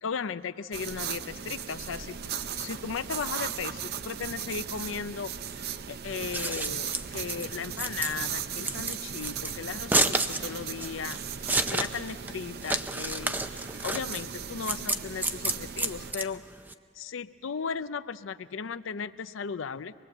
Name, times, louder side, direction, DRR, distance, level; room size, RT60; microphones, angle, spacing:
voice 1, 0.0-16.4 17.0-19.9, left 6 dB, 85° left, 14 dB, 0.5 m, -36 dB
sound 1, 0.7-16.1, right 8 dB, 55° right, 0.6 m, -37 dB
Scissors, 6.1-16.7, right 2 dB, 10° right, 0.5 m, -30 dB
25.0 x 20.5 x 7.8 m, 2.4 s
head